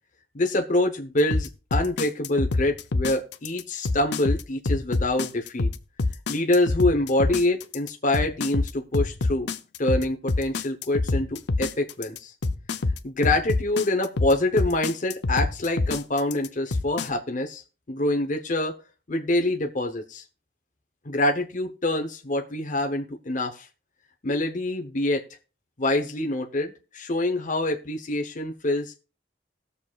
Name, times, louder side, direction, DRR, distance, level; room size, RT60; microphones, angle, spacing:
voice 1, 0.3-5.7 6.3-9.5 9.8-12.3 13.0-17.6 17.9-18.8 19.1-20.2 21.0-23.7 24.2-25.2 25.8-29.0, left 1 dB, 45° left, 4 dB, 1.0 m, -25 dB
sound 1, 1.3-17.1, left 3 dB, 70° left, 0.6 m, -26 dB
20.0 x 6.9 x 2.4 m, 0.35 s
head